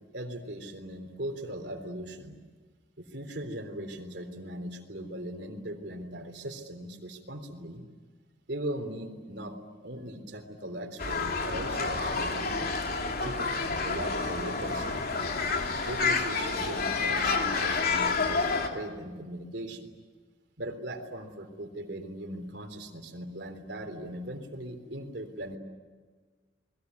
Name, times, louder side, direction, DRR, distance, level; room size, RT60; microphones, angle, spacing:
voice 1, 0.1-2.4 3.0-7.8 8.5-9.6 9.8-12.8 13.2-15.0 15.8-19.9 20.6-25.6, right 1 dB, 70° right, 6 dB, 3.7 m, -39 dB
sound 1, 11.0-18.7, left 4 dB, 60° left, 3.0 m, -29 dB
28.5 x 21.5 x 9.6 m, 1.5 s
head